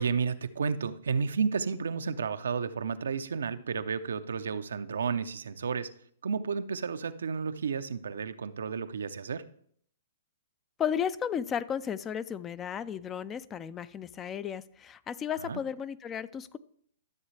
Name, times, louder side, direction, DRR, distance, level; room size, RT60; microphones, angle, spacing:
voice 1, 0.0-5.9 6.2-9.5 15.4-15.6, right 5 dB, 85° right, 11 dB, 0.6 m, -32 dB
voice 2, 10.8-16.6, left 8 dB, 20° left, 17 dB, 0.4 m, -34 dB
13.0 x 7.3 x 3.3 m, 0.63 s
hypercardioid pair, 140°, 0 cm